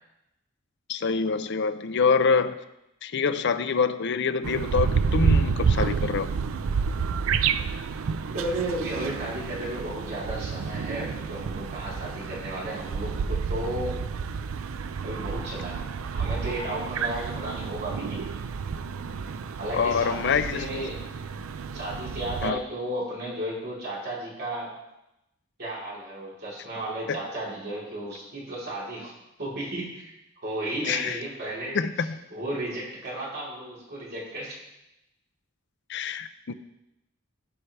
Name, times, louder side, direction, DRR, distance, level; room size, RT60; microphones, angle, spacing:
voice 1, 0.9-2.6 3.0-6.3 19.7-20.7 22.4-22.6 27.1-27.2 30.8-31.2 31.7-32.2 35.9-36.5, left 5 dB, 60° left, 11 dB, 0.5 m, -25 dB
sound 1, 4.4-22.5, right 6 dB, 80° right, 0.4 m, -29 dB
voice 2, 8.3-14.0 15.0-18.4 19.6-21.0 21.7-24.7 25.6-29.1 29.4-30.1 30.4-31.8 32.3-34.6, right 1 dB, 55° right, -7 dB, 3.9 m, -34 dB
15.5 x 5.7 x 3.3 m, 0.89 s
head